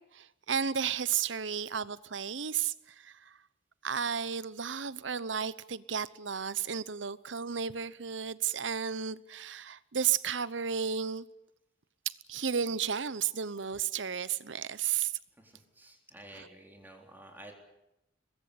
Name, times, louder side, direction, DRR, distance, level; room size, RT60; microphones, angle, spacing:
voice 1, 0.0-3.4 3.8-11.3 12.1-15.1 16.3-16.5, right 7 dB, 80° right, 0.9 m, -33 dB
voice 2, 15.4-17.5, right 1 dB, 10° right, 3.9 m, -51 dB
23.5 x 21.0 x 8.7 m
head